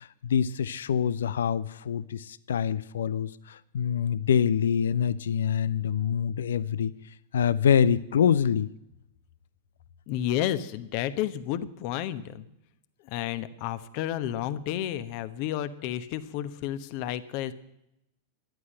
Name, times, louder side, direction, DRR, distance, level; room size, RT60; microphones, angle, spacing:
voice 1, 0.0-6.9 7.3-8.7, left 8 dB, 65° left, 17 dB, 0.5 m, -25 dB
voice 2, 10.1-12.4 13.1-17.5, left 12 dB, 45° left, 11 dB, 1.1 m, -31 dB
14.0 x 11.5 x 7.7 m, 0.84 s
figure-of-eight pair, 90°, 0 cm